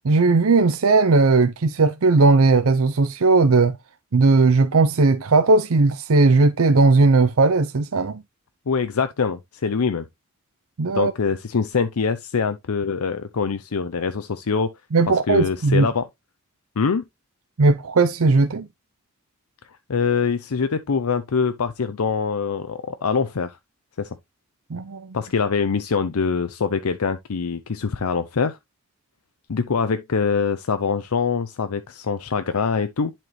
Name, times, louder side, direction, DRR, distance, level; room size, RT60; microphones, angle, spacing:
voice 1, 0.0-3.7 4.1-8.2 10.8-11.1 14.9-15.9 17.6-18.7 24.7-25.2, right 3 dB, 75° right, 0.6 m, -17 dB
voice 2, 8.7-10.1 10.9-14.7 15.3-16.1 16.8-17.0 19.9-23.6 24.0-24.2 25.1-28.6 29.5-33.1, left 5 dB, 85° left, 0.6 m, -24 dB
11.0 x 4.4 x 3.1 m
head